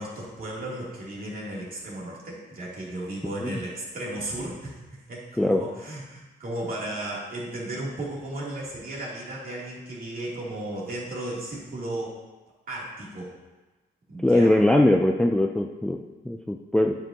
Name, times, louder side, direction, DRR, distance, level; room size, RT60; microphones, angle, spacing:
voice 1, 0.0-4.7 5.1-12.2 12.7-13.3 14.1-14.5, right 1 dB, 45° right, -5 dB, 3.0 m, -35 dB
voice 2, 14.2-16.0 16.3-17.0, left 1 dB, 5° left, 3 dB, 0.4 m, -21 dB
9.2 x 7.9 x 2.9 m, 1.2 s
cardioid pair, 90°, 20 cm